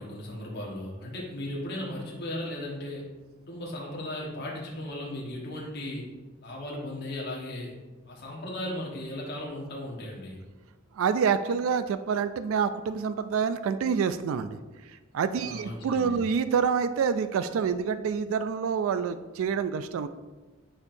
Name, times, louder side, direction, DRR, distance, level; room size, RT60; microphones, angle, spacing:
voice 1, 0.0-3.0 3.4-6.1 6.4-7.7 8.1-10.4 15.4-16.2, left 1 dB, 55° left, -4 dB, 1.3 m, -36 dB
voice 2, 11.0-14.6 14.9-20.1, right 6 dB, 90° right, 11 dB, 0.3 m, -27 dB
9.7 x 4.4 x 2.6 m, 1.2 s
head